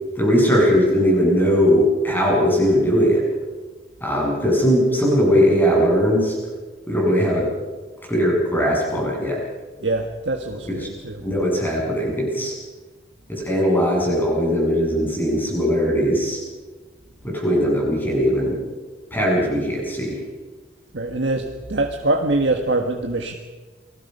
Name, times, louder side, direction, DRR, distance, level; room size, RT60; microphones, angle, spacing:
voice 1, 0.2-3.2 4.0-6.4 6.9-7.5 8.1-9.4 10.6-10.8 11.2-12.5 13.3-16.4 17.2-18.6 19.1-20.2, equal, 10° left, -3 dB, 7.9 m, -19 dB
voice 2, 9.8-11.2 20.9-23.3, right 2 dB, 70° right, 4 dB, 1.5 m, -23 dB
28.0 x 19.5 x 5.5 m, 1.3 s
head